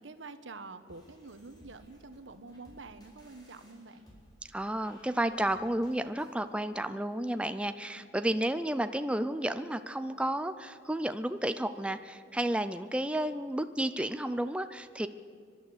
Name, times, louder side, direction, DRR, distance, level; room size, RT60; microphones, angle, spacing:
voice 1, 0.0-4.1, right 3 dB, 75° right, 10 dB, 1.2 m, -47 dB
sound 1, 0.9-6.5, equal, 20° left, 4.1 m, -60 dB
voice 2, 4.5-15.1, right 1 dB, 5° right, 10 dB, 0.4 m, -32 dB
30.0 x 11.5 x 8.0 m, 2.2 s
head